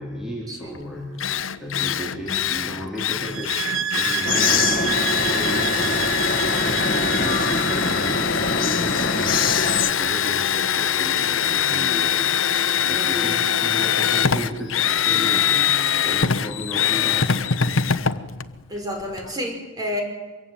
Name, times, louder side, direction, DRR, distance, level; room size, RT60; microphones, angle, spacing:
voice 1, 0.0-17.4, equal, 5° right, -4 dB, 4.1 m, -35 dB
Drill, 0.7-0.8 1.2-19.3, left 8 dB, 75° left, 1.0 m, -23 dB
sound 1, 3.2-8.3, right 8 dB, 80° right, 1.4 m, -28 dB
sound 2, 4.2-9.9, left 4 dB, 45° left, 1.8 m, -24 dB
voice 2, 12.9-13.4 14.3-14.4 18.7-20.0, left 1 dB, 20° right, 2 dB, 5.5 m, -30 dB
24.5 x 23.0 x 9.1 m, 1.3 s
head